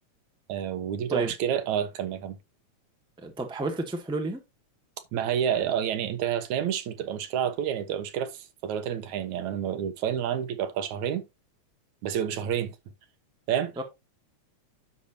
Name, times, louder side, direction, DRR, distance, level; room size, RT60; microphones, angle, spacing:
voice 1, 0.5-2.4 5.1-11.2 12.0-12.8 13.5-13.7, right 9 dB, 80° right, 2.5 m, -29 dB
voice 2, 3.2-4.4 13.8-13.9, right 2 dB, 5° right, 0.9 m, -31 dB
10.5 x 7.0 x 2.8 m
omnidirectional pair, 3.3 m